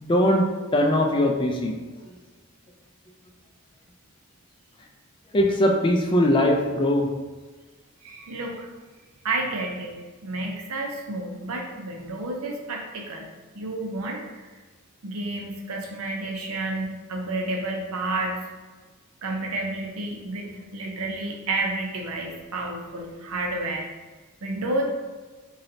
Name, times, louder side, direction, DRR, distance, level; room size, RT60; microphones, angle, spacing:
voice 1, 0.0-0.4 0.7-1.8 5.3-7.1, left 1 dB, 25° left, 1 dB, 0.4 m, -20 dB
voice 2, 8.0-8.7 9.2-9.9 10.2-13.3 13.5-14.4 15.0-18.4 19.2-23.9 24.4-24.8, right 2 dB, 80° right, 1 dB, 0.7 m, -30 dB
4.0 x 3.1 x 2.7 m, 1.3 s
head